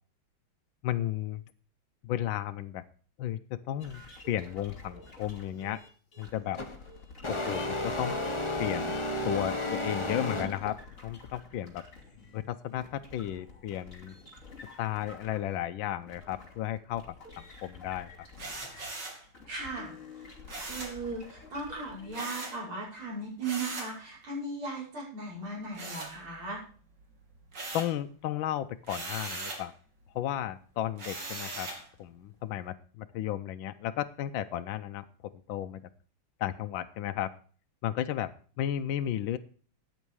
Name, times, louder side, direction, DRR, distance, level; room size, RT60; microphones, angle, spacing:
voice 1, 0.8-1.4 2.0-2.8 3.2-5.8 6.2-6.6 7.3-8.2 8.6-11.9 12.3-14.2 14.8-18.3 27.7-29.7 30.1-31.7 32.0-35.0 35.5-35.8 36.4-37.3 37.8-39.4, left 11 dB, 70° left, 8 dB, 1.4 m, -34 dB
sound 1, 3.8-19.0 19.3-22.3, left 3 dB, 35° left, 3.3 m, -50 dB
sound 2, 6.6-6.8 7.2-10.8, left 1 dB, 20° left, 1.0 m, -32 dB
sound 3, 18.4-19.2 20.5-21.0 22.1-22.6 23.4-24.0 25.7-26.6 27.0-28.0 28.8-29.7 31.0-31.9, right 2 dB, 55° right, 3.3 m, -39 dB
voice 2, 19.5-20.3 20.6-26.6, right 3 dB, 75° right, -3 dB, 6.4 m, -37 dB
14.0 x 9.2 x 4.8 m, 0.42 s
omnidirectional pair, 2.3 m